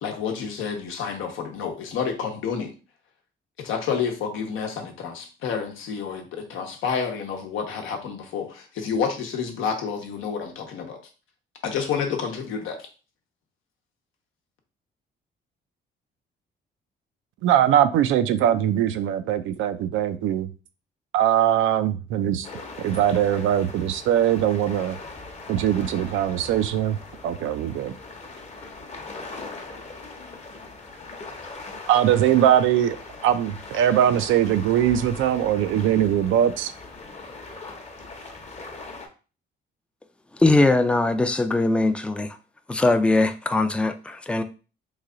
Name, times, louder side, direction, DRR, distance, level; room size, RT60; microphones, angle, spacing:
voice 1, 0.0-2.7 3.6-11.0 11.6-12.9, left 6 dB, 85° left, 0.8 m, -29 dB
voice 2, 17.4-20.5 21.1-22.5 22.8-25.0 25.5-27.0 27.2-27.9 31.9-33.0 33.2-36.7, right 10 dB, 85° right, 0.4 m, -21 dB
sound 1, 22.4-39.1, left 3 dB, 35° left, 0.8 m, -40 dB
voice 3, 40.4-42.4 42.7-44.4, left 2 dB, 5° left, 0.3 m, -21 dB
3.1 x 2.3 x 3.7 m
cardioid pair, 90°, 20 cm